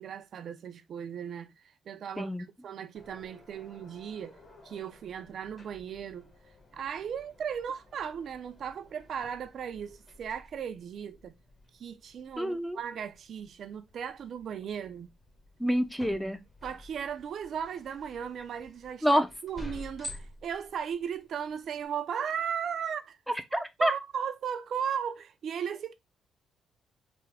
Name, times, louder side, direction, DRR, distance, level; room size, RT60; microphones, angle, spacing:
voice 1, 0.0-1.5 1.9-2.3 2.6-4.4 4.6-6.3 6.7-11.3 11.8-15.1 16.6-23.2 23.5-25.9, right 8 dB, 60° right, 0.3 m, -36 dB
sound 1, 2.9-21.9, left 1 dB, 20° left, 1.0 m, -51 dB
voice 2, 12.4-12.8 15.6-16.4 19.0-19.3 23.5-23.9, equal, ahead, 0.5 m, -27 dB
3.3 x 2.1 x 3.4 m
cardioid pair, 90°, 0 cm